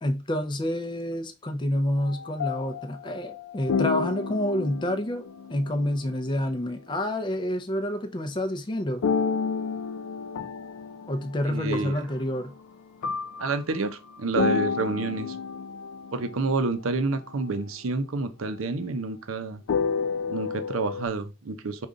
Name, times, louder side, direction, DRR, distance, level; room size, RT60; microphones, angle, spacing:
voice 1, 0.0-9.0 11.1-12.5, left 1 dB, 25° left, 0.5 m, -28 dB
sound 1, 2.0-6.1 9.0-12.6 13.0-16.6 17.1-17.3 19.7-21.1, left 5 dB, 90° left, 0.5 m, -31 dB
voice 2, 11.5-12.0 13.4-15.4 16.1-19.6 20.3-21.9, right 3 dB, 85° right, 0.6 m, -29 dB
5.2 x 2.3 x 3.7 m
head